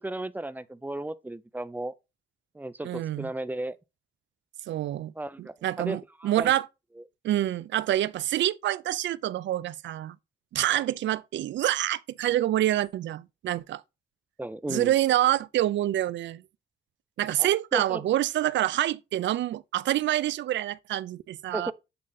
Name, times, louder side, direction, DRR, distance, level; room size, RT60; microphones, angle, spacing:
voice 1, 0.0-1.9 2.5-3.8 5.2-6.5 14.4-14.9 17.4-18.0 21.5-21.7, right 2 dB, 10° right, 0.6 m, -34 dB
voice 2, 2.8-3.3 4.7-5.1 5.4-6.7 7.2-10.2 10.5-13.8 14.7-16.4 17.2-21.7, right 13 dB, 80° right, 0.5 m, -27 dB
7.7 x 3.6 x 4.0 m
cardioid pair, 85°, 19 cm